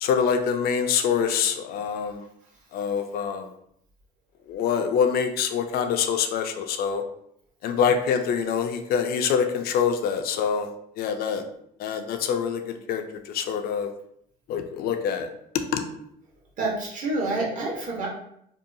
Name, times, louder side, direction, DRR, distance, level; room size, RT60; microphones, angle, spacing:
voice 1, 0.0-2.2 2.7-3.5 4.5-7.0 7.6-10.7 11.0-11.4 11.8-13.9 14.5-15.3 15.7-15.8, left 7 dB, 65° left, 6 dB, 0.4 m, -25 dB
voice 2, 2.4-2.8 7.8-7.9 16.6-18.1, right 2 dB, 50° right, -2 dB, 1.0 m, -29 dB
2.7 x 2.2 x 2.5 m, 0.72 s
cardioid pair, 110°, 17 cm